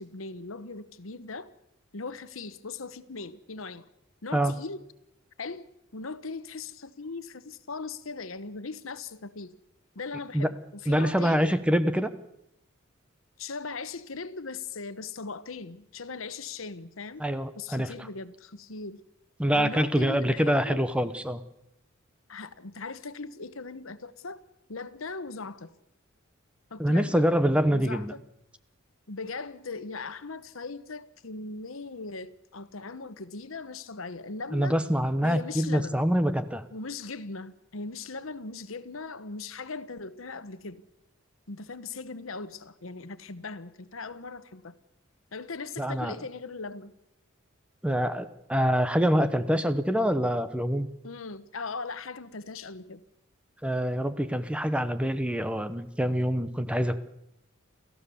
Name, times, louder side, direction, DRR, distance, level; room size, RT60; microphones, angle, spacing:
voice 1, 0.0-1.5 1.9-3.9 4.2-4.8 5.4-5.7 5.9-9.5 9.9-11.6 13.4-17.2 17.6-19.0 19.5-20.8 22.3-24.4 24.7-25.7 26.7-27.2 27.7-28.2 29.1-34.8 35.2-36.0 36.7-40.8 41.5-44.7 45.3-46.9 51.0-53.0, left 4 dB, 75° left, 1.1 m, -39 dB
voice 2, 10.9-12.1 17.2-17.9 19.4-21.4 26.8-28.1 34.5-36.6 45.8-46.1 47.8-50.9 53.6-57.0, equal, 5° right, 1.0 m, -25 dB
28.5 x 15.0 x 7.1 m
head